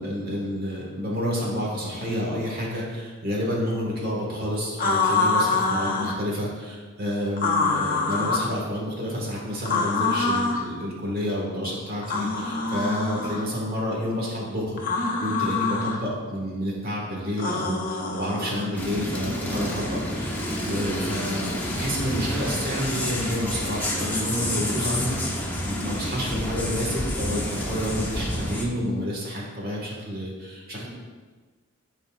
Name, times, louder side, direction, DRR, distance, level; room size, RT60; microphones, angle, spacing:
voice 1, 0.0-21.5 21.7-30.9, equal, 45° right, -3 dB, 1.6 m, -29 dB
sound 1, 4.8-6.2 7.4-8.5 9.7-10.7 12.0-13.4 14.8-16.0 17.4-18.7, left 3 dB, 40° left, 0.7 m, -25 dB
sound 2, 18.8-28.7, left 1 dB, 10° left, 0.8 m, -29 dB
10.5 x 4.2 x 2.4 m, 1.4 s
head